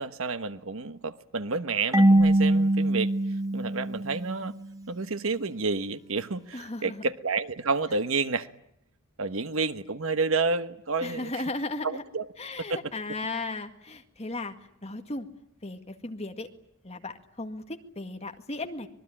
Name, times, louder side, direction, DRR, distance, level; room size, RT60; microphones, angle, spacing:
voice 1, 0.0-3.1 3.5-4.5 4.9-8.5 9.2-11.3 11.8-12.3 12.7-12.8, right 4 dB, 65° right, 1.2 m, -30 dB
Marimba xylophone / Wood, 1.9-4.7, right 1 dB, 15° right, 1.5 m, -23 dB
voice 2, 6.5-7.0 11.0-12.0 12.4-14.5 14.8-15.3 15.6-16.5 16.8-18.9, left 2 dB, 30° left, 2.0 m, -36 dB
25.5 x 21.5 x 10.0 m
head